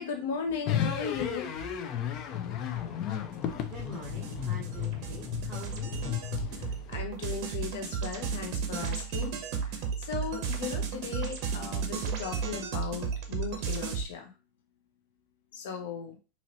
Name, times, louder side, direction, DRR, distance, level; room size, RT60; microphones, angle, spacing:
voice 1, 0.0-1.5 6.4-14.3 15.5-16.2, left 6 dB, 70° left, 3 dB, 0.8 m, -37 dB
metal balls spin in balloon ST, 0.7-7.0, left 9 dB, 35° left, 0.4 m, -34 dB
sound 1, 3.3-14.0, right 6 dB, 50° right, 0.9 m, -34 dB
voice 2, 3.7-6.0, equal, 15° right, -7 dB, 1.2 m, -45 dB
4.0 x 2.8 x 3.0 m, 0.33 s
supercardioid pair, 150°, 0 cm